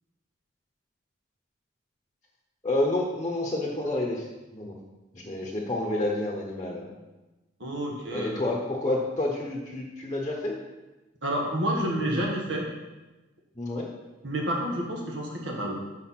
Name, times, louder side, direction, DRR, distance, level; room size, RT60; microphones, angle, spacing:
voice 1, 2.6-4.3 4.5-4.7 5.1-6.9 8.1-10.6 13.6-13.9, left 2 dB, 20° left, -1 dB, 1.0 m, -29 dB
voice 2, 7.6-8.4 11.2-12.6 14.2-15.8, right 1 dB, 65° right, -1 dB, 1.5 m, -29 dB
6.6 x 6.4 x 5.8 m, 1.1 s
head